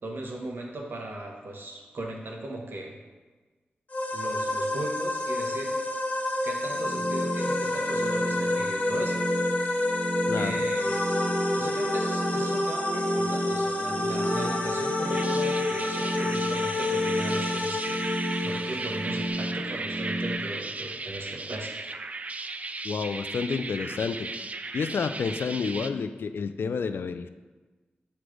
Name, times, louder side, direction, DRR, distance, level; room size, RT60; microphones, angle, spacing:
voice 1, 0.0-3.0 4.1-6.0 6.4-9.2 10.3-11.1 11.5-21.8, right 1 dB, 70° right, 0 dB, 1.1 m, -38 dB
sound 1, 3.9-19.3, left 2 dB, 40° left, 0.7 m, -29 dB
sound 2, 6.7-20.3, equal, 5° right, 1.1 m, -33 dB
voice 2, 10.3-10.6 22.8-24.3 24.7-27.3, left 5 dB, 75° left, 10 dB, 0.3 m, -30 dB
sound 3, 14.8-25.9, right 3 dB, 40° right, 0.3 m, -36 dB
6.0 x 3.2 x 4.9 m, 1.3 s
cardioid pair, 65°, 4 cm